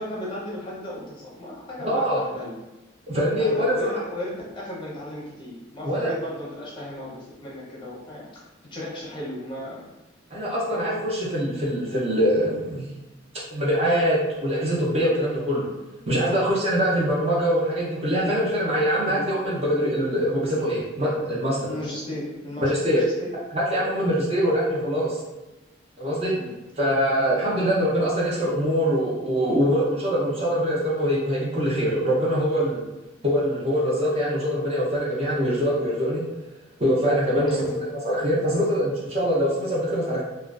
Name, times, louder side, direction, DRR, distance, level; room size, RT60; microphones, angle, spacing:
voice 1, 0.0-2.6 3.4-8.4 8.7-9.9 10.7-10.9 16.3-16.5 19.1-19.3 21.7-23.4 23.9-24.1 26.3-26.5 37.4-37.8, left 1 dB, 25° left, -5 dB, 0.6 m, -35 dB
voice 2, 1.8-2.2 3.1-3.9 5.8-6.1 10.3-12.9 13.5-15.7 16.1-21.6 22.6-23.0 23.5-25.2 26.0-26.4 26.8-32.8 33.2-36.2 36.8-40.2, equal, 30° right, -6 dB, 0.5 m, -23 dB
2.4 x 2.2 x 2.3 m, 1.0 s
head